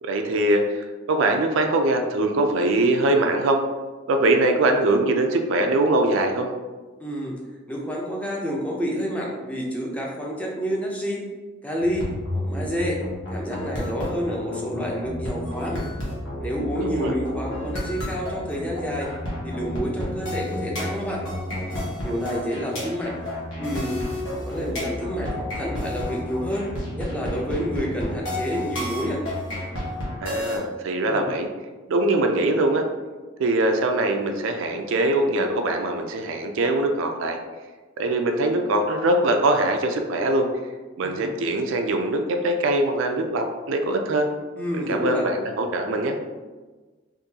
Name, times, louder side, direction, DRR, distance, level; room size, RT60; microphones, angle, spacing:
voice 1, 0.0-3.6 4.1-6.5 16.8-17.1 30.2-31.5 31.9-32.9 33.4-37.4 38.0-40.5 41.0-44.3 44.7-46.2, right 2 dB, 70° right, 4 dB, 0.4 m, -22 dB
voice 2, 7.0-7.3 7.7-11.3 11.6-13.0 13.3-15.8 16.4-19.1 19.4-21.2 22.0-23.2 23.6-24.0 24.4-26.7 27.0-29.2 31.0-31.3 41.0-41.3 44.6-45.2, equal, 5° left, -3 dB, 0.5 m, -29 dB
sound 1, 11.8-30.6, left 1 dB, 65° left, 1.2 m, -31 dB
3.7 x 2.6 x 2.7 m, 1.3 s
head